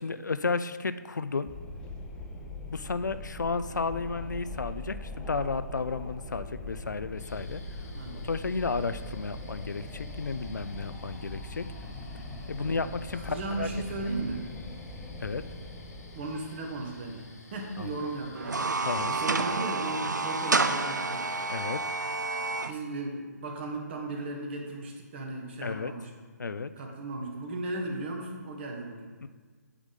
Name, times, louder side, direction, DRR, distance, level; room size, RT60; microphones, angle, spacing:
voice 1, 0.0-1.5 2.7-7.6 8.1-11.7 12.5-13.7 15.2-15.5 17.8-18.0 18.8-19.2 21.5-21.8 25.6-25.9 26.4-26.7 29.2-29.3, left 4 dB, 85° left, 13 dB, 0.4 m, -33 dB
Wind, 1.5-16.8, left 2 dB, 10° left, 0.5 m, -42 dB
sound 1, 7.2-19.6, left 1 dB, 60° left, 1.3 m, -50 dB
voice 2, 7.9-8.3 12.6-12.8 13.1-14.5 16.1-17.3 17.5-21.3 22.6-26.1 26.8-29.1, right 2 dB, 35° right, 1 dB, 1.3 m, -36 dB
sound 2, 18.4-22.7, right 3 dB, 85° right, 0.5 m, -29 dB
8.2 x 3.6 x 5.5 m, 1.5 s
figure-of-eight pair, 145°, 10 cm